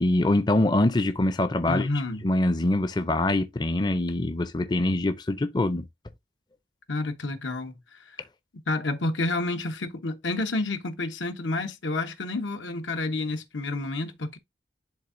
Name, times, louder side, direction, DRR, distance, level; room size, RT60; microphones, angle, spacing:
voice 1, 0.0-1.9 2.2-5.8, left 1 dB, 25° left, 0.4 m, -24 dB
voice 2, 1.7-2.3 6.9-8.2 8.7-14.4, left 2 dB, 90° left, 1.1 m, -29 dB
10.5 x 3.7 x 2.6 m
head